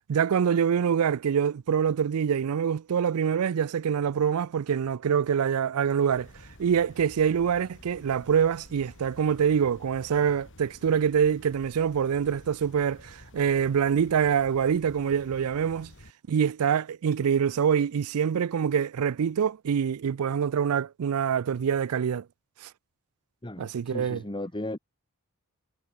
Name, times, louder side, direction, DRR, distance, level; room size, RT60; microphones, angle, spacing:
voice 1, 0.1-6.3 6.6-15.9 16.3-22.2 22.6-22.7 23.6-24.2, right 7 dB, 75° right, 0.4 m, -25 dB
sound 1, 6.1-16.1, left 1 dB, 60° left, 3.5 m, -51 dB
voice 2, 23.4-24.8, left 1 dB, 20° left, 1.7 m, -35 dB
head